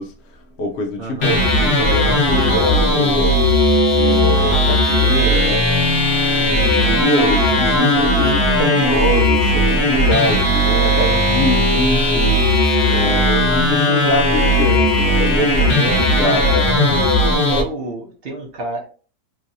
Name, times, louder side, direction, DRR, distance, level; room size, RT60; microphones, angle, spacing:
voice 1, 0.0-3.4 3.9-5.7 6.5-12.6 12.9-17.1, equal, 60° left, 0.7 m, -24 dB
voice 2, 1.0-1.3 6.3-6.6 15.4-17.1 17.5-18.8, right 3 dB, 55° right, 0.6 m, -30 dB
sound 1, 1.2-17.6, left 1 dB, 45° left, 1.0 m, -16 dB
3.1 x 2.7 x 2.6 m
omnidirectional pair, 1.7 m